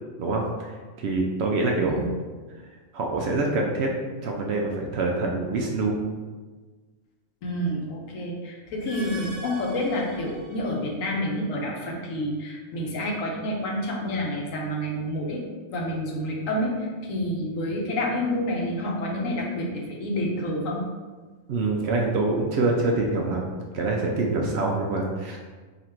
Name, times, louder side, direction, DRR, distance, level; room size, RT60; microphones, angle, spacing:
voice 1, 0.2-0.7 1.0-2.1 2.9-3.9 4.2-6.0 21.5-25.4, right 3 dB, 65° right, 0 dB, 0.7 m, -25 dB
voice 2, 7.4-15.4 15.7-20.8, left 1 dB, 80° left, -1 dB, 1.2 m, -28 dB
sound 1, 8.7-10.9, right 2 dB, 20° right, 0.9 m, -43 dB
3.8 x 2.5 x 4.3 m, 1.4 s
omnidirectional pair, 1.4 m